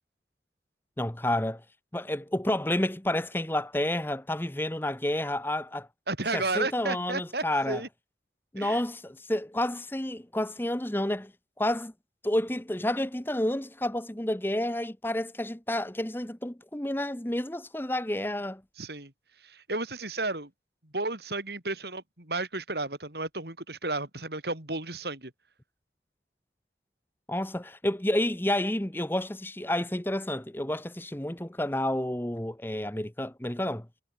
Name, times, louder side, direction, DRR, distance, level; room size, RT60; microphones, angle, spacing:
voice 1, 1.0-1.6 1.9-5.9 6.3-7.8 8.5-11.3 11.6-11.9 12.2-18.6 27.3-33.9, left 1 dB, 10° left, 1.0 m, -30 dB
voice 2, 6.1-7.9 8.6-8.8 18.8-19.1 19.4-20.5 20.8-25.3, right 2 dB, 70° right, 4.4 m, -33 dB
head